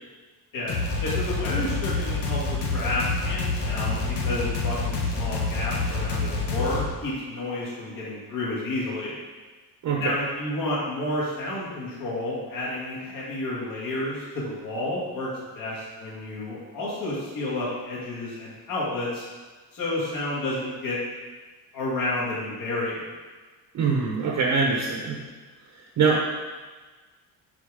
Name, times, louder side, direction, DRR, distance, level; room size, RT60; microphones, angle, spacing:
voice 1, 0.5-9.2 10.0-19.3 19.7-21.0 21.7-23.1, left 1 dB, 55° left, -6 dB, 2.0 m, -30 dB
sound 1, 0.7-6.9, left 3 dB, 80° left, 1.3 m, -27 dB
voice 2, 9.8-10.1 23.7-25.2 26.0-26.2, right 5 dB, 50° right, -1 dB, 1.0 m, -23 dB
4.9 x 4.8 x 5.0 m, 1.3 s
cardioid pair, 140°, 40 cm